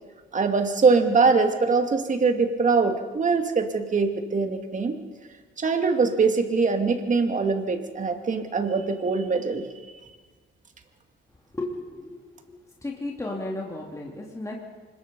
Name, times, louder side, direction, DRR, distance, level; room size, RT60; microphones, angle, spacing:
voice 1, 0.3-5.0 5.6-9.7, right 4 dB, 40° right, 6 dB, 2.5 m, -23 dB
voice 2, 11.5-12.2 12.5-12.6 12.8-14.6, left 2 dB, 15° left, -2 dB, 3.1 m, -34 dB
25.0 x 21.5 x 5.5 m, 1.4 s
cardioid pair, 90°, 20 cm